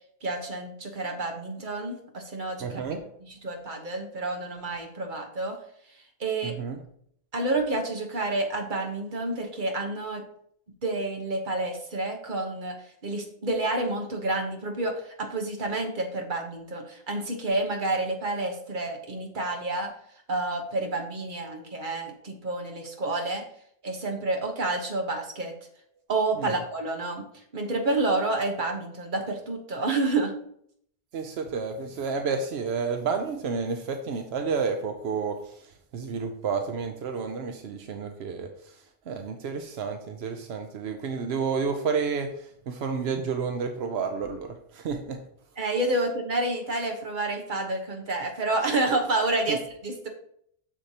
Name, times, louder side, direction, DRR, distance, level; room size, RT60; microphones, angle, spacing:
voice 1, 0.2-2.8 3.2-5.6 6.2-6.5 7.3-10.2 10.8-12.7 13.0-19.9 20.3-23.4 23.8-25.5 26.1-27.2 27.5-30.3 45.6-50.1, right 2 dB, 50° right, 3 dB, 1.4 m, -29 dB
voice 2, 2.6-3.0 6.4-6.8 26.4-26.6 31.1-38.8 39.1-45.2, right 5 dB, 85° right, 6 dB, 0.9 m, -30 dB
7.4 x 6.5 x 2.9 m, 0.67 s
omnidirectional pair, 1.0 m